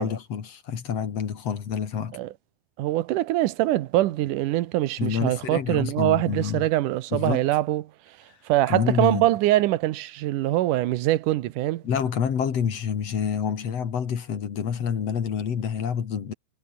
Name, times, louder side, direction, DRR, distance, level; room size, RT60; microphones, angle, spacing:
voice 1, 0.0-2.2 5.0-6.7 7.1-7.4 8.7-9.3 11.8-16.3, left 7 dB, 55° left, 3.2 m, -27 dB
voice 2, 2.8-7.8 8.5-11.8, right 15 dB, 90° right, 2.5 m, -23 dB
omnidirectional pair, 3.6 m